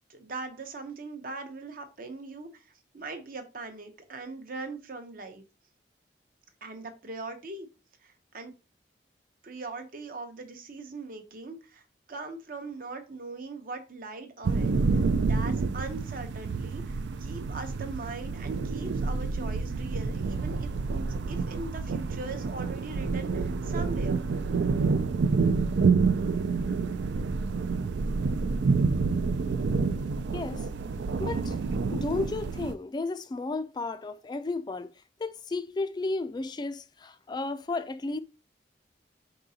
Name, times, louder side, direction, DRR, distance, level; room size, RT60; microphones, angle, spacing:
voice 1, 0.1-5.4 6.6-7.7 8.0-8.5 9.4-11.8 12.1-24.2, right 3 dB, 55° right, 0.8 m, -41 dB
sound 1, 14.4-32.7, right 4 dB, 85° right, 0.4 m, -28 dB
voice 2, 30.3-30.7 31.2-31.6 31.9-34.9 35.2-38.2, left 3 dB, 25° left, 0.3 m, -33 dB
4.8 x 3.9 x 2.7 m
head